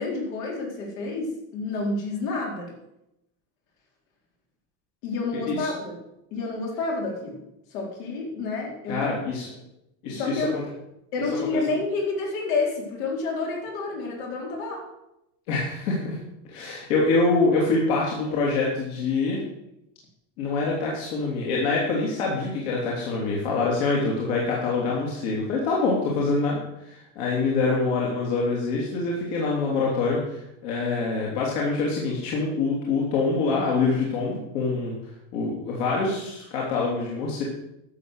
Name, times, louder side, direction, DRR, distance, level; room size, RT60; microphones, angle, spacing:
voice 1, 0.0-2.7 5.0-6.0 6.3-7.4 7.7-9.1 10.1-10.6 11.1-14.9, left 3 dB, 80° left, -1 dB, 4.4 m, -29 dB
voice 2, 8.9-9.5 10.0-10.4 15.5-16.2 16.5-19.4 20.4-34.9 35.3-37.4, left 3 dB, 65° left, -3 dB, 3.1 m, -25 dB
12.0 x 7.4 x 6.5 m, 0.85 s
cardioid pair, 175°, 40 cm